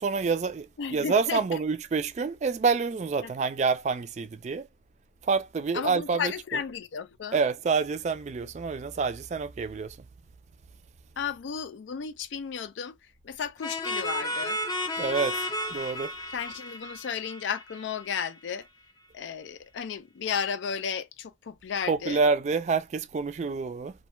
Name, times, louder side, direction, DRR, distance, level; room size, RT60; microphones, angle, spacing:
voice 1, 0.0-4.7 5.2-6.3 7.3-10.0 15.0-15.4 15.7-16.1 21.9-23.9, right 4 dB, 40° right, 0.3 m, -27 dB
voice 2, 0.8-1.6 3.2-3.3 5.7-7.4 11.2-12.9 13.2-14.6 16.3-18.7 19.1-22.2, left 7 dB, 90° left, 0.4 m, -33 dB
sound 1, 13.6-18.2, left 1 dB, 20° left, 0.5 m, -33 dB
2.5 x 2.2 x 2.9 m
head